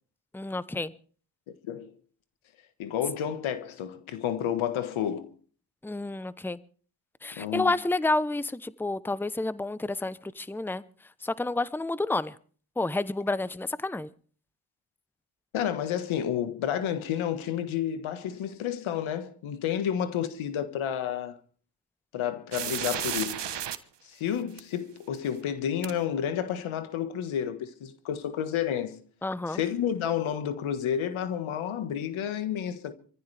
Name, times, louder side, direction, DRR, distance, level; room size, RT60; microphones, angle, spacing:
voice 1, 0.3-0.9 5.8-6.6 7.2-10.8 11.2-12.3 12.8-14.1 29.2-29.6, left 2 dB, 5° left, 0.8 m, -30 dB
voice 2, 2.8-5.3 7.3-7.7 15.5-21.4 22.1-23.5 24.0-29.0 29.5-32.9, left 9 dB, 85° left, 1.6 m, -30 dB
sound 1, 22.5-23.8 24.6-24.7 25.8-25.9, right 9 dB, 60° right, 1.3 m, -32 dB
25.5 x 14.5 x 3.4 m
supercardioid pair, 50°, 47 cm